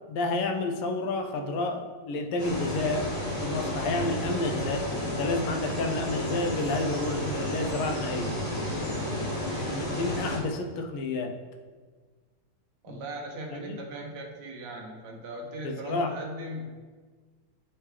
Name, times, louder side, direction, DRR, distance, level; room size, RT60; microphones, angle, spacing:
voice 1, 0.1-3.1 3.4-8.3 9.7-11.3 12.9-13.0 13.5-13.8 15.6-16.1, left 3 dB, 90° left, 4 dB, 1.5 m, -30 dB
sound 1, 2.4-10.4, left 1 dB, 50° left, 2.4 m, -32 dB
voice 2, 12.8-16.8, right 1 dB, 70° right, 0 dB, 0.6 m, -38 dB
8.7 x 3.3 x 3.3 m, 1.5 s
omnidirectional pair, 2.4 m